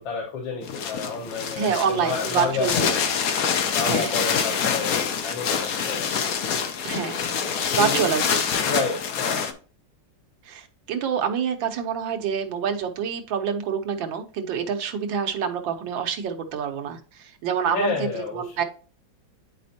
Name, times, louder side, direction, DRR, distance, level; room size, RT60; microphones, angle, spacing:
voice 1, 0.0-3.1 3.7-6.1 6.9-7.2 7.8-8.1 8.6-9.5 17.7-18.5, left 4 dB, 85° left, -1 dB, 1.9 m, -30 dB
sound 1, 0.6-9.5, left 7 dB, 60° left, 1.1 m, -26 dB
voice 2, 1.5-2.9 3.8-4.2 6.8-7.2 7.7-8.4 10.4-18.6, right 7 dB, 80° right, 6 dB, 1.7 m, -27 dB
10.0 x 4.3 x 2.7 m, 0.37 s
omnidirectional pair, 2.1 m